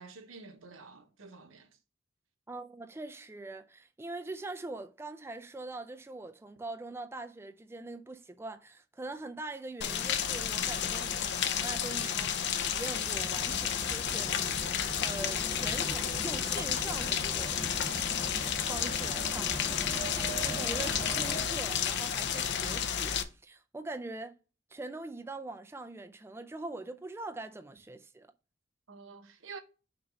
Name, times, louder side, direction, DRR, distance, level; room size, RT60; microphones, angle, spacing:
voice 1, 0.0-1.8 28.9-29.6, right 4 dB, 85° right, 1.0 m, -49 dB
voice 2, 2.5-14.7 15.0-17.6 18.7-24.4 24.7-28.3, right 2 dB, 10° right, 0.4 m, -43 dB
Rain, 9.8-23.2, left 8 dB, 60° left, 0.6 m, -32 dB
sound 1, 12.6-21.4, right 1 dB, 5° left, 1.2 m, -41 dB
6.1 x 3.1 x 5.1 m
head